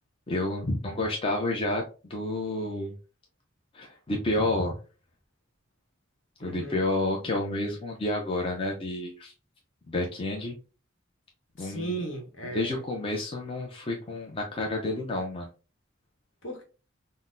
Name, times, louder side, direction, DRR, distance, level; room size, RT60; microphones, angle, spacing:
voice 1, 0.3-1.8 2.1-2.9 3.7-4.8 6.4-9.3 9.9-10.6 11.6-11.9 12.5-15.5, left 2 dB, 25° left, 0 dB, 0.5 m, -30 dB
voice 2, 6.4-6.8 11.6-12.8 16.4-16.6, right 2 dB, 70° left, 2 dB, 1.0 m, -36 dB
3.8 x 2.1 x 2.5 m, 0.34 s
head